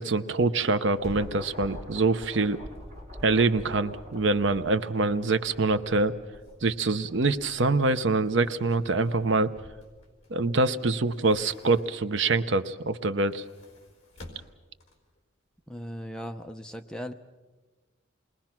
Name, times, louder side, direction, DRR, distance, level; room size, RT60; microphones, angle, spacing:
voice 1, 0.0-2.6 3.2-6.1 6.6-9.5 10.3-13.4, right 3 dB, 65° right, 11 dB, 0.7 m, -25 dB
sound 1, 1.0-10.1, left 1 dB, 35° right, 5.9 m, -46 dB
sound 2, 6.4-6.5 7.5-10.5 10.9-12.3 13.1-15.2 15.6-15.7, left 1 dB, 35° left, 4.4 m, -52 dB
voice 2, 15.7-17.1, equal, 5° left, 5 dB, 0.7 m, -38 dB
28.0 x 21.5 x 6.0 m, 1.3 s
head